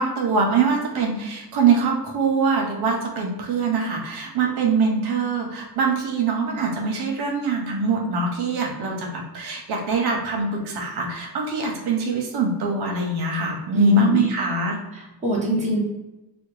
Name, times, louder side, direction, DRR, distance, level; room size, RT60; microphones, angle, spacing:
voice 1, 0.0-14.8, right 4 dB, 75° right, 0 dB, 0.8 m, -23 dB
voice 2, 13.7-14.3 14.9-15.8, right 1 dB, 20° right, -4 dB, 0.8 m, -24 dB
3.4 x 2.1 x 3.1 m, 0.98 s
wide cardioid pair, 160°, 39 cm